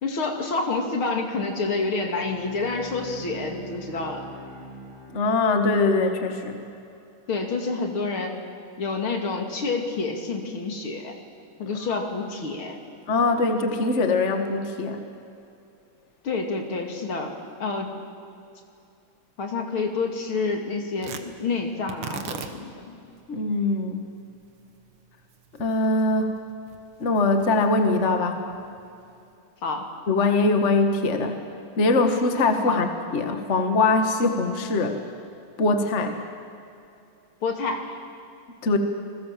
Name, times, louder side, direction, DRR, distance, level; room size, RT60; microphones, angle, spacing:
voice 1, 0.0-4.3 7.3-8.4 8.8-11.1 11.6-12.8 16.2-17.9 19.4-23.0 29.6-29.9 32.7-32.8 37.4-38.0, left 3 dB, 70° left, 3 dB, 3.3 m, -28 dB
Bowed string instrument, 1.9-6.0, right 3 dB, 35° right, 3.0 m, -43 dB
voice 2, 5.1-6.6 11.9-12.1 13.1-15.0 23.3-24.1 25.6-26.4 27.0-28.4 30.1-31.4 31.8-32.9 33.1-35.0 35.6-36.2 38.6-38.8, left 3 dB, 35° left, 6 dB, 1.8 m, -22 dB
Tearing, 21.0-29.3, right 7 dB, 85° right, 2.4 m, -43 dB
28.5 x 21.0 x 7.6 m, 2.7 s
omnidirectional pair, 2.4 m